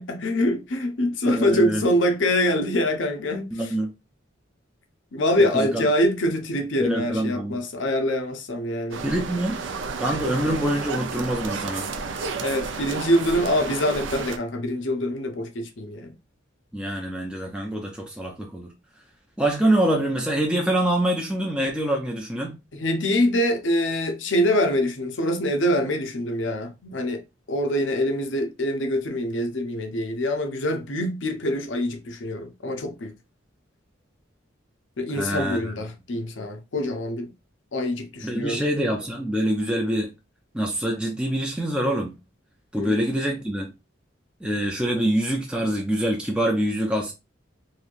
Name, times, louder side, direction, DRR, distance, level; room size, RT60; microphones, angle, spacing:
voice 1, 0.0-3.7 5.1-9.0 12.4-16.1 22.7-27.2 27.5-33.1 35.0-37.3 37.7-38.6 42.7-43.0, left 1 dB, 70° left, 0.6 m, -24 dB
voice 2, 1.3-1.8 3.5-3.9 5.4-5.9 6.8-7.6 9.0-9.6 10.0-11.9 16.7-18.7 19.4-22.6 35.1-35.7 38.2-40.1 40.5-42.2 42.7-43.7 44.4-47.1, right 1 dB, 5° right, 0.5 m, -25 dB
sound 1, 8.9-14.4, right 4 dB, 65° right, 0.5 m, -32 dB
3.1 x 2.7 x 2.4 m
head